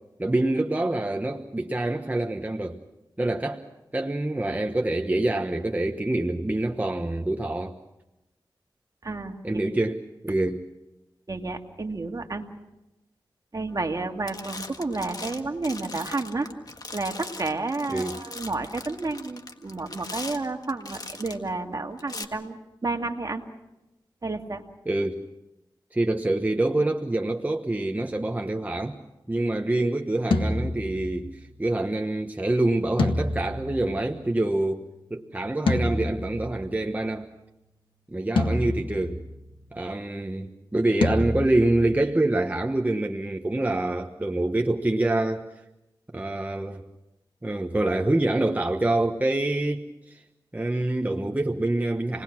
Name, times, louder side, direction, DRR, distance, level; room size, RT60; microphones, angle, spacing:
voice 1, 0.2-2.8 3.2-3.6 3.9-7.7 9.4-10.6 17.9-18.2 24.9-25.2 25.9-29.0 29.3-34.8 35.1-37.3 38.1-39.2 39.7-45.5 46.1-46.8 47.4-50.2 50.5-52.2, right 2 dB, 20° right, 3 dB, 1.2 m, -26 dB
voice 2, 9.0-9.6 11.3-12.5 13.5-16.5 16.9-23.4 24.2-24.6, right 3 dB, 45° right, 4 dB, 2.1 m, -31 dB
sound 1, 13.8-14.0 14.3-21.5 22.0-22.2, left 3 dB, 50° left, 1.7 m, -40 dB
sound 2, 30.3-31.5 33.0-34.5 35.7-36.9 38.4-39.6 41.0-42.1, left 2 dB, 85° left, 1.5 m, -28 dB
28.0 x 19.5 x 6.0 m, 0.94 s
cardioid pair, 60°, 8 cm